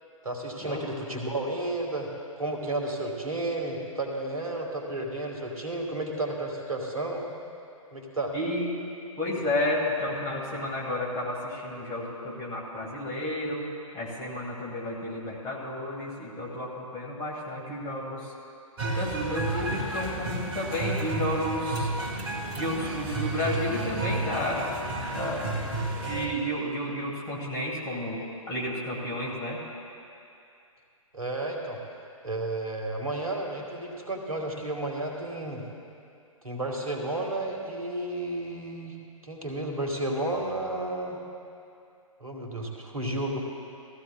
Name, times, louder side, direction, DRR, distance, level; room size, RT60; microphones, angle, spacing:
voice 1, 0.2-2.1 2.4-7.2 7.9-8.3 31.1-31.8 32.2-35.6 36.4-39.0 39.2-41.2 42.2-43.4, right 2 dB, 80° right, 1 dB, 1.9 m, -32 dB
voice 2, 8.3-8.7 9.2-13.7 13.9-18.3 18.9-21.9 22.5-24.7 25.1-25.4 26.0-29.6, left 1 dB, 20° left, -4 dB, 2.0 m, -31 dB
sound 1, 18.8-26.3, right 2 dB, 50° right, 2.0 m, -31 dB
18.5 x 14.5 x 2.4 m, 2.5 s
figure-of-eight pair, 125°, 18 cm